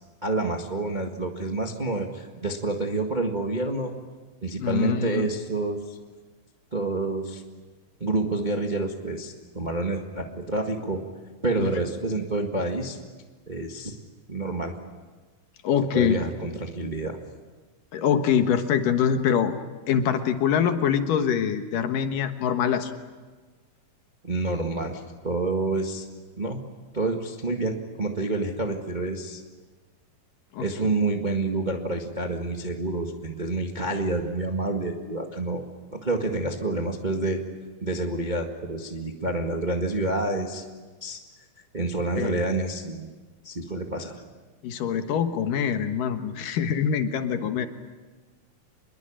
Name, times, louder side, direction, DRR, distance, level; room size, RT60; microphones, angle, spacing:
voice 1, 0.2-3.9 4.4-6.0 6.7-7.4 8.0-11.0 11.4-13.0 13.5-13.9 14.3-14.7 15.9-17.2 24.2-26.0 26.4-26.6 26.9-29.4 30.6-35.6 35.9-37.4 37.8-40.7 41.0-41.2 41.7-43.1 43.4-44.2, right 2 dB, 25° right, 2 dB, 0.9 m, -28 dB
voice 2, 4.6-5.3 11.6-11.7 15.6-16.2 17.9-19.5 19.9-22.9 30.5-30.7 42.2-42.4 44.6-47.7, left 8 dB, 70° left, 7 dB, 2.9 m, -24 dB
26.5 x 22.0 x 8.9 m, 1.4 s
omnidirectional pair, 4.1 m